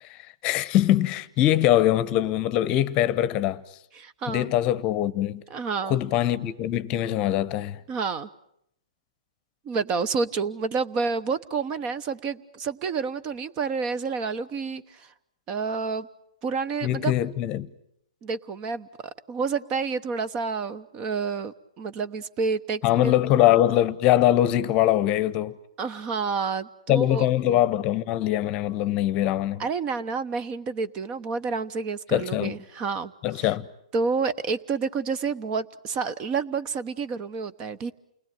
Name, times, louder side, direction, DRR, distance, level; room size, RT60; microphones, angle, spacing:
voice 1, 0.0-3.6 4.3-5.4 5.9-7.8 16.8-17.7 22.8-25.6 26.9-29.6 32.1-32.5 33.2-33.7, left 13 dB, 30° left, 1.0 m, -23 dB
voice 2, 4.0-4.5 5.5-6.0 7.9-8.3 9.6-15.1 15.5-16.1 16.4-17.2 18.2-23.1 25.8-27.3 29.6-33.1 33.4-33.5 33.9-37.9, right 5 dB, 25° right, 1.0 m, -29 dB
29.0 x 19.5 x 9.2 m
hypercardioid pair, 140°, 3 cm